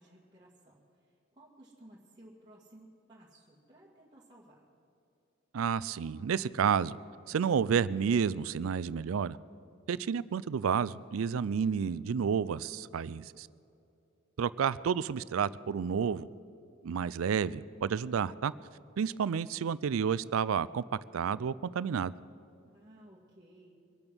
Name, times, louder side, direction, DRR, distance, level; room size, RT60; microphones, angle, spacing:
voice 1, 0.0-4.7 22.6-23.7, right 1 dB, 20° right, -7 dB, 2.0 m, -57 dB
voice 2, 5.5-7.0 7.3-9.4 9.9-13.5 14.4-16.3 16.8-18.5 19.0-20.8 21.1-22.1, right 7 dB, 85° right, 19 dB, 0.4 m, -30 dB
24.0 x 8.8 x 6.2 m, 2.6 s
head